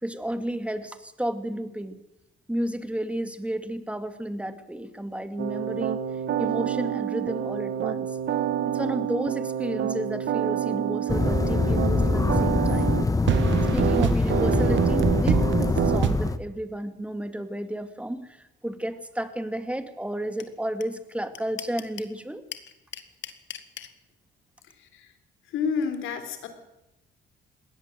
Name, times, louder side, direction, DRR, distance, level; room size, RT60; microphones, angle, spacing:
voice 1, 0.0-2.0 2.5-6.0 6.4-8.2 8.7-13.0 13.7-22.4, right 1 dB, 5° right, 9 dB, 2.4 m, -32 dB
sound 1, 5.4-16.3, right 10 dB, 70° right, 1.5 m, -27 dB
sound 2, 11.1-16.4, left 3 dB, 15° left, 1.3 m, -24 dB
sound 3, 20.4-20.5 20.8-20.9 21.1-22.1 22.5-23.9, left 10 dB, 70° left, 2.0 m, -37 dB
voice 2, 24.7-25.1 25.5-26.5, left 6 dB, 85° left, 8 dB, 4.0 m, -30 dB
21.0 x 17.0 x 7.7 m, 0.90 s
cardioid pair, 90°, 20 cm